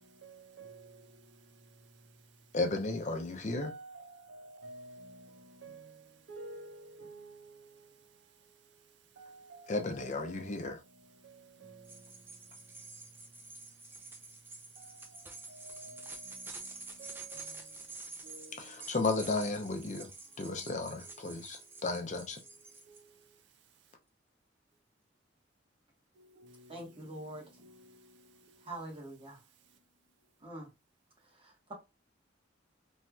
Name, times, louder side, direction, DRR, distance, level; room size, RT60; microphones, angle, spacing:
voice 1, 2.5-3.7 9.7-10.8 18.6-20.1 20.4-22.4, left 3 dB, 40° left, 0.6 m, -34 dB
voice 2, 3.6-5.1 5.6-5.8 6.3-6.7 7.0-7.3 9.2-9.7 10.0-10.3 15.7-15.9 17.0-17.4 18.3-18.5, right 2 dB, 65° right, 0.5 m, -48 dB
sound 1, 11.8-23.0, right 3 dB, 10° right, 0.4 m, -48 dB
voice 3, 26.7-27.5 28.6-29.4 30.4-30.7 31.2-31.7, right 1 dB, 30° right, 1.1 m, -44 dB
3.1 x 2.8 x 2.2 m
head